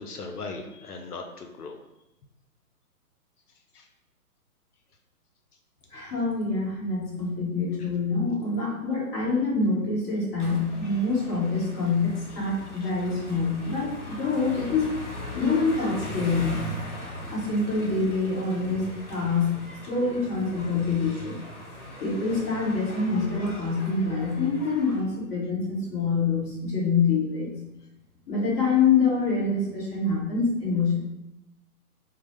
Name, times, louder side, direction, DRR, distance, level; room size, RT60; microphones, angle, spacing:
voice 1, 0.0-1.8 3.7-3.9 7.8-7.9 12.4-12.5 12.8-12.9, left 3 dB, 80° left, 4 dB, 0.6 m, -39 dB
voice 2, 5.9-15.0 15.3-16.6 17.3-19.5 19.9-21.4 22.0-27.5 28.3-31.0, left 4 dB, 20° left, -7 dB, 0.9 m, -26 dB
sound 1, 10.4-25.0, left 1 dB, 50° left, 1.2 m, -39 dB
4.4 x 2.1 x 3.1 m, 0.91 s
figure-of-eight pair, 130°, 45 cm